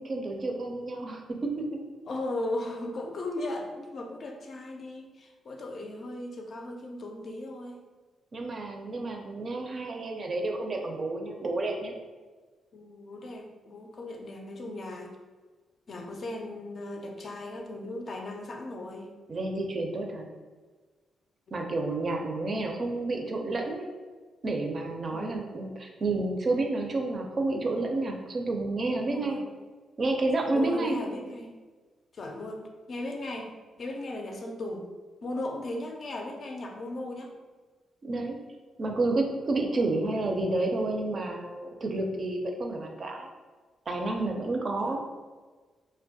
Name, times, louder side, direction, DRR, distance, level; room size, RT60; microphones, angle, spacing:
voice 1, 0.0-1.7 8.3-11.9 19.3-20.3 21.5-23.9 24.4-29.4 30.0-31.0 38.0-38.4 38.8-43.3 43.9-45.0, right 2 dB, 50° right, 2 dB, 0.4 m, -30 dB
voice 2, 2.1-7.8 12.7-15.1 15.9-19.1 25.1-25.4 28.9-29.4 30.5-31.5 32.1-34.9 35.2-37.3 44.4-45.0, left 1 dB, 55° left, 2 dB, 0.4 m, -37 dB
2.2 x 2.0 x 2.7 m, 1.4 s
supercardioid pair, 55°, 0 cm